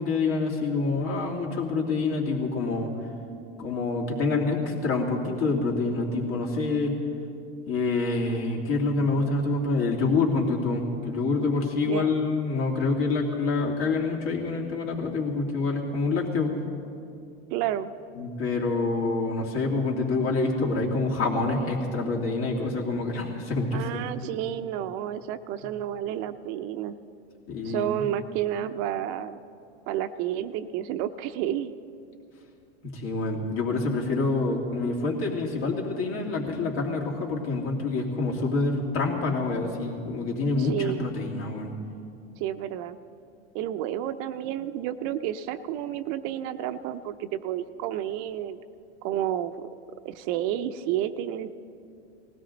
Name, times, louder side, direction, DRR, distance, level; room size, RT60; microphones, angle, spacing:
voice 1, 0.0-2.9 3.6-7.0 7.7-16.6 18.2-24.3 27.5-28.1 32.8-41.7, left 3 dB, 60° left, -1 dB, 2.9 m, -27 dB
voice 2, 11.8-12.1 17.5-17.9 23.7-27.0 27.6-29.4 29.9-31.7 40.6-41.1 42.4-43.0 43.5-48.6 49.0-49.7 50.0-51.5, right 11 dB, 45° right, 10 dB, 0.5 m, -30 dB
19.5 x 16.0 x 4.0 m, 2.6 s
supercardioid pair, 125°, 34 cm